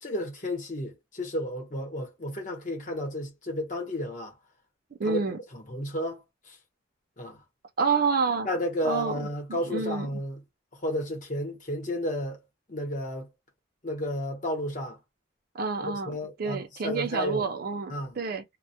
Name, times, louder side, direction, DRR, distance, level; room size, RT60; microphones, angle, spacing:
voice 1, 0.0-4.3 5.0-5.2 5.5-6.6 7.2-7.4 8.4-10.4 10.8-12.4 12.7-13.3 13.8-15.0 15.8-17.5 17.9-18.2, left 1 dB, 40° left, 0.8 m, -32 dB
voice 2, 5.0-5.4 7.8-8.5 8.8-10.2 15.5-16.1 16.4-18.4, right 4 dB, 45° right, 0.4 m, -28 dB
2.1 x 2.1 x 2.7 m
head